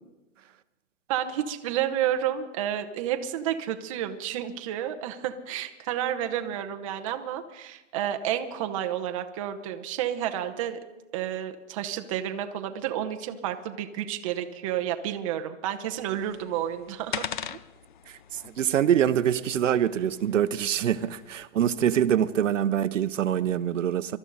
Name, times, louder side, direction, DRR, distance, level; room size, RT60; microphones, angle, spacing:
voice 1, 1.1-10.8 11.1-17.3, right 10 dB, 25° right, 6 dB, 0.8 m, -30 dB
sound 1, 16.0-21.5, left 9 dB, 40° left, 0.5 m, -41 dB
voice 2, 18.1-24.2, right 10 dB, 75° right, 13 dB, 0.8 m, -25 dB
23.0 x 13.0 x 4.0 m, 1.1 s
hypercardioid pair, 160°, 38 cm